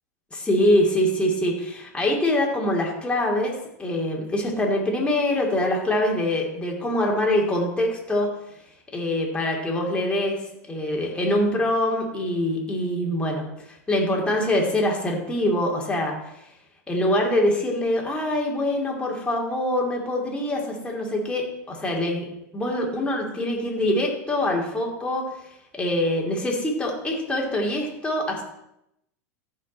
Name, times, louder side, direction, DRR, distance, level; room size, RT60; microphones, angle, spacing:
voice 1, 0.3-3.5 3.8-8.3 8.9-10.4 10.7-16.2 16.9-22.3 22.5-25.2 25.7-28.4, left 1 dB, 10° left, -1 dB, 2.8 m, -24 dB
14.5 x 5.4 x 4.3 m, 0.82 s
hypercardioid pair, 105°, 9 cm